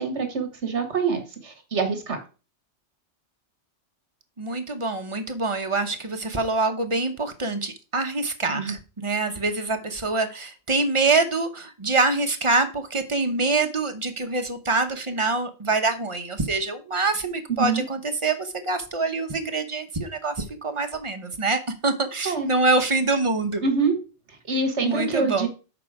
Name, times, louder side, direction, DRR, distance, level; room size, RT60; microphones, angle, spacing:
voice 1, 0.0-2.2 8.5-8.7 17.5-17.8 22.2-22.5 23.6-24.0 24.3-25.5, right 4 dB, 70° right, 7 dB, 1.7 m, -25 dB
voice 2, 4.4-23.6 24.8-25.5, right 3 dB, 30° right, 7 dB, 0.9 m, -25 dB
7.0 x 4.8 x 4.8 m, 0.33 s
omnidirectional pair, 1.2 m